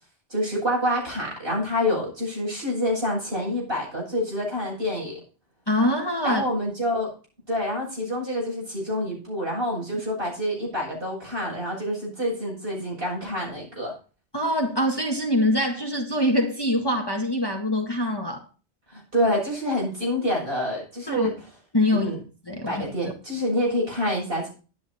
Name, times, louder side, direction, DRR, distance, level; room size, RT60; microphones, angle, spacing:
voice 1, 0.3-5.2 6.2-7.1 7.5-13.9 18.9-21.3 21.9-22.2 22.7-24.5, left 1 dB, 55° right, 8.0 m, -27 dB
voice 2, 5.7-6.4 14.3-18.4 21.1-21.3 21.7-22.1 22.5-22.8, left 1 dB, 20° left, 1.8 m, -24 dB
11.5 x 10.5 x 4.3 m
omnidirectional pair, 1.1 m